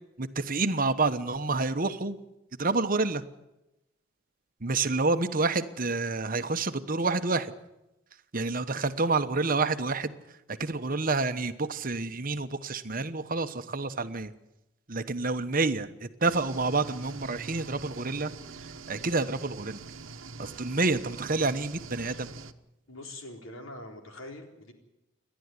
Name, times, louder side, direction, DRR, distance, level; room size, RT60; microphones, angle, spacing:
voice 1, 0.2-2.2 2.6-3.2 4.6-7.5 8.3-10.1 10.5-14.3 14.9-18.3 18.9-19.8 20.4-22.3, right 3 dB, 45° right, 9 dB, 1.1 m, -28 dB
sound 1, 16.2-22.5, right 4 dB, 75° right, 1.1 m, -44 dB
voice 2, 22.9-24.7, left 1 dB, 80° left, 3 dB, 4.0 m, -43 dB
29.0 x 11.5 x 9.8 m, 0.94 s
head